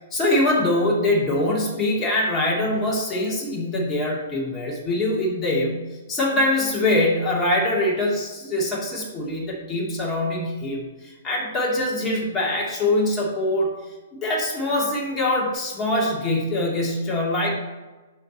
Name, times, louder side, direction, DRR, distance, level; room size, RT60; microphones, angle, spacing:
voice 1, 0.1-13.7 14.1-17.6, left 1 dB, 20° left, -4 dB, 2.5 m, -23 dB
11.0 x 3.7 x 4.3 m, 1.2 s
hypercardioid pair, 140°, 0 cm